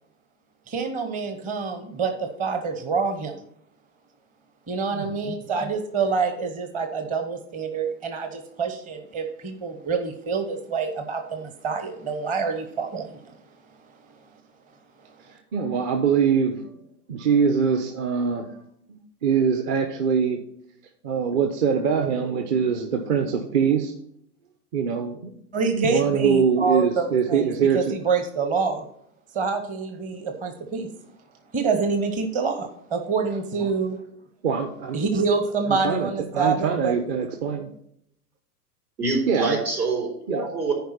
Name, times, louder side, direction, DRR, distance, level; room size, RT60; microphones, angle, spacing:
voice 1, 0.7-3.4 4.7-13.4 25.5-28.9 29.3-30.9 31.5-34.0 34.9-36.9, right 5 dB, 15° right, 6 dB, 0.8 m, -26 dB
voice 2, 4.9-5.3 15.2-16.7 17.1-18.5 18.9-20.4 21.0-23.9 24.7-25.3 25.6-27.9 33.6-33.7 34.4-35.1 35.7-37.7 39.3-39.6 40.3-40.4, right 6 dB, 40° right, 5 dB, 1.0 m, -23 dB
voice 3, 39.0-40.7, right 3 dB, 75° right, -1 dB, 4.4 m, -25 dB
10.5 x 4.7 x 5.8 m, 0.71 s
figure-of-eight pair, 100°, 47 cm